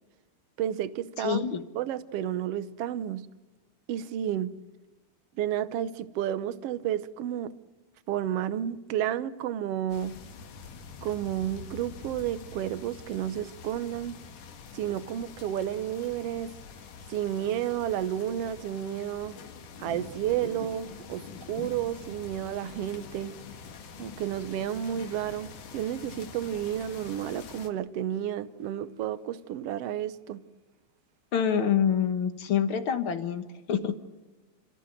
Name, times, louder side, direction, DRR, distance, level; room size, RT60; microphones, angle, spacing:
voice 1, 0.6-3.3 3.9-4.5 5.4-7.5 8.1-10.2 11.0-14.2 14.7-16.5 17.1-19.4 19.8-23.3 24.0-25.5 25.7-30.4, right 11 dB, 70° right, 1.5 m, -31 dB
voice 2, 1.2-1.6 31.3-33.4 33.7-33.9, left 8 dB, 55° left, 1.7 m, -26 dB
sound 1, 9.9-27.7, left 5 dB, 80° left, 3.3 m, -45 dB
30.0 x 14.5 x 9.1 m
omnidirectional pair, 3.7 m